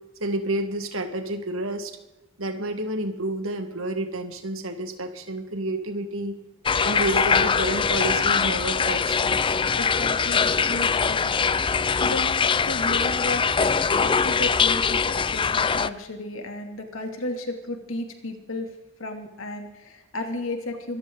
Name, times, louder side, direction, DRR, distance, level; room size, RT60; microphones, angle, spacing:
voice 1, 0.2-2.0 2.4-6.4 6.8-9.2, right 1 dB, 85° right, 7 dB, 1.7 m, -29 dB
sound 1, 6.7-15.9, left 5 dB, 25° left, 0.4 m, -22 dB
voice 2, 9.8-11.3 12.0-13.4 13.9-18.7 19.0-21.0, left 1 dB, 80° left, 4 dB, 2.8 m, -33 dB
25.5 x 14.0 x 4.0 m, 1.0 s
head